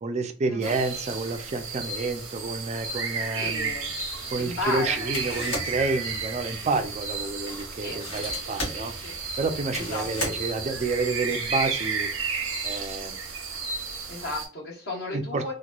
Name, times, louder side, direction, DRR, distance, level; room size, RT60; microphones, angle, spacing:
voice 1, 0.0-3.7 4.3-8.9 9.4-12.1 12.6-13.2 15.1-15.5, right 3 dB, 35° right, 8 dB, 0.3 m, -29 dB
sound 1, 0.6-14.5, right 4 dB, 85° right, 0.7 m, -33 dB
voice 2, 3.3-4.0 4.4-5.1 7.8-8.0 8.7-9.2 9.7-10.3 14.1-15.5, left 2 dB, 55° left, -3 dB, 1.0 m, -34 dB
sound 2, 3.5-11.0, left 1 dB, 75° left, 1.3 m, -38 dB
Cymbal, 5.5-6.9, right 7 dB, 10° left, 0.7 m, -38 dB
2.9 x 2.1 x 2.3 m, 0.36 s
head